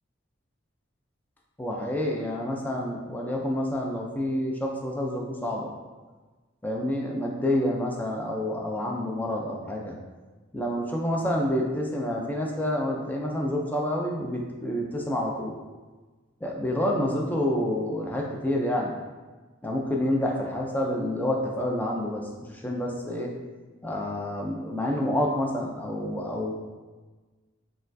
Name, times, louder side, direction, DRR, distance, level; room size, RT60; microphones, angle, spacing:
voice 1, 1.6-5.7 6.6-9.9 10.5-15.5 16.4-18.9 19.6-23.3 23.8-26.5, left 1 dB, 10° left, -1 dB, 0.3 m, -28 dB
4.2 x 2.3 x 2.6 m, 1.3 s
head